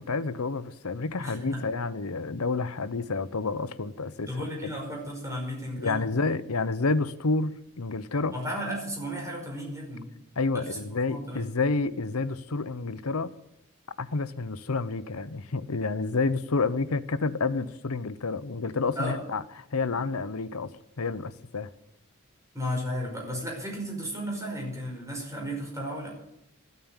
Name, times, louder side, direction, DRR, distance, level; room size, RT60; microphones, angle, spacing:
voice 1, 0.0-4.4 5.8-8.3 10.4-13.3 14.0-19.4 19.7-20.7 21.0-21.7, left 3 dB, 80° left, 0.9 m, -29 dB
voice 2, 1.2-1.6 4.3-6.0 8.3-10.0 10.5-10.8 11.1-11.4 19.0-19.2 22.5-26.1, equal, 15° right, 5.1 m, -34 dB
14.5 x 9.4 x 8.9 m
head